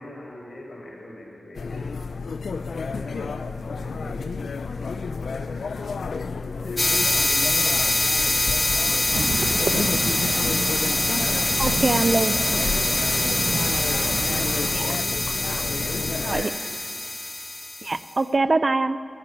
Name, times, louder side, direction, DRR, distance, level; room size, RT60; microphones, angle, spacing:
voice 1, 0.0-2.1 2.5-4.1 4.5-7.3 7.8-9.6 10.2-10.4 12.4-13.6 13.9-14.8 15.5-16.6, left 1 dB, 65° left, -2 dB, 4.8 m, -42 dB
sound 1, 1.5-16.5, left 4 dB, 85° left, 0.5 m, -31 dB
sound 2, 6.8-18.0, left 1 dB, 20° left, 1.0 m, -24 dB
sound 3, 9.1-14.7, right 3 dB, 85° right, 0.9 m, -31 dB
voice 2, 11.6-12.3 14.7-14.9 16.2-16.5 17.8-19.0, right 3 dB, 50° right, 13 dB, 0.5 m, -23 dB
13.0 x 9.3 x 10.0 m, 2.3 s
cardioid pair, 60°, 0 cm